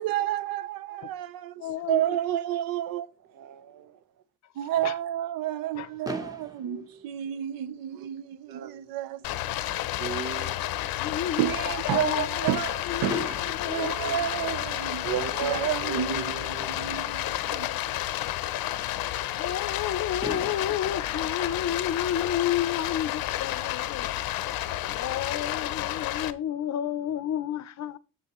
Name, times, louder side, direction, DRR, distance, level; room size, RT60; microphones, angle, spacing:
voice 1, 0.0-1.3 1.9-3.1 4.6-9.2 11.4-15.1 15.4-17.7, right 12 dB, 90° right, 0.6 m, -30 dB
voice 2, 1.6-2.2 4.8-4.9 5.7-5.9 11.0-13.9 19.3-24.2 24.6-28.0, left 10 dB, 50° left, 0.6 m, -31 dB
voice 3, 3.3-4.0 6.6-7.1 8.5-8.9 9.7-10.5 13.3-14.2 15.0-16.9 21.5-21.6, right 8 dB, 65° right, 0.9 m, -37 dB
Fireworks, 6.0-8.1 8.9-9.0 9.2-9.4 9.7-9.8 13.1-14.9 16.6-16.7 19.7-19.8 20.2-22.5, right 1 dB, 10° right, 0.9 m, -41 dB
Stream, 9.2-26.3, left 14 dB, 90° left, 0.6 m, -31 dB
7.6 x 6.4 x 3.0 m
cardioid pair, 115°, 34 cm